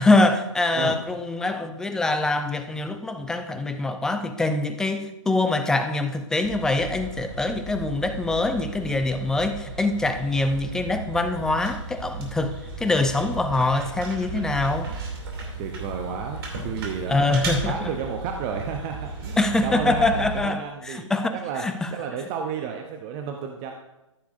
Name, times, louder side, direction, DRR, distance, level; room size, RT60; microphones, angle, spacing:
voice 1, 0.0-14.9 17.1-17.9 19.4-20.6 20.9-21.3 21.6-21.9, left 2 dB, 5° left, 9 dB, 0.3 m, -24 dB
sound 1, 6.4-20.4, right 2 dB, 45° right, 2.6 m, -35 dB
voice 2, 15.6-21.1 21.3-21.6 21.9-23.7, right 7 dB, 25° right, 4 dB, 0.7 m, -32 dB
14.0 x 7.0 x 2.5 m, 0.98 s
figure-of-eight pair, 125°, 17 cm